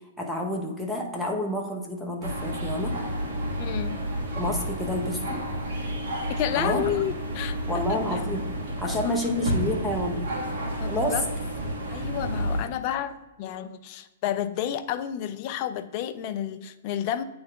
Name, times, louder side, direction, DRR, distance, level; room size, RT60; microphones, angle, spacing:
voice 1, 0.2-2.9 4.4-5.4 6.6-6.8 7.7-8.4 8.8-10.2 10.9-11.1, left 1 dB, ahead, -1 dB, 1.1 m, -29 dB
sound 1, 2.2-12.6, equal, 65° right, 1.7 m, -30 dB
voice 2, 3.6-4.0 6.3-7.6 7.9-8.2 8.8-9.1 10.8-11.2 11.9-17.2, left 10 dB, 45° left, 11 dB, 0.5 m, -31 dB
8.8 x 3.4 x 3.8 m, 1.1 s
hypercardioid pair, 130°, 0 cm